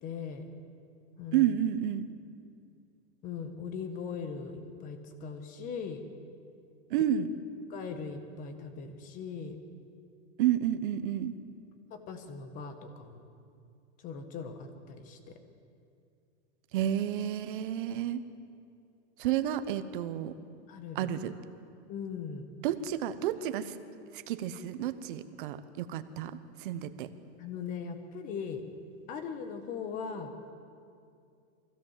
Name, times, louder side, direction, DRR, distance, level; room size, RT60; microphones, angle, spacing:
voice 1, 0.0-0.5 1.2-1.4 3.2-6.0 7.7-9.6 11.9-13.3 14.0-15.4 20.7-21.1 21.9-22.5 27.4-28.6 29.1-30.3, left 6 dB, 20° left, 8 dB, 1.3 m, -39 dB
voice 2, 1.3-2.1 6.9-7.3 10.4-11.3 16.7-18.2 19.2-20.3 20.9-21.3 22.6-23.7 24.1-27.1, right 11 dB, 45° right, 11 dB, 1.0 m, -30 dB
23.5 x 16.0 x 7.5 m, 2.4 s
supercardioid pair, 170°, 36 cm